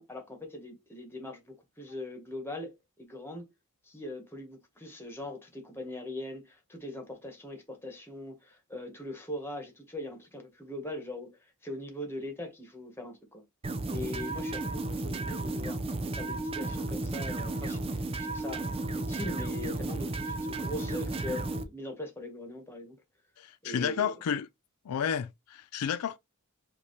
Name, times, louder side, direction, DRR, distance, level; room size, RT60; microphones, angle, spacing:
voice 1, 0.0-3.5 3.8-13.4 13.9-15.8 16.2-18.6 18.9-23.0 23.6-24.1, left 1 dB, 10° left, 1.3 m, -41 dB
sound 1, 13.6-21.6, right 2 dB, 25° right, 0.5 m, -33 dB
voice 2, 23.4-24.5 24.9-26.2, left 8 dB, 80° left, 0.4 m, -31 dB
5.0 x 2.8 x 3.1 m
head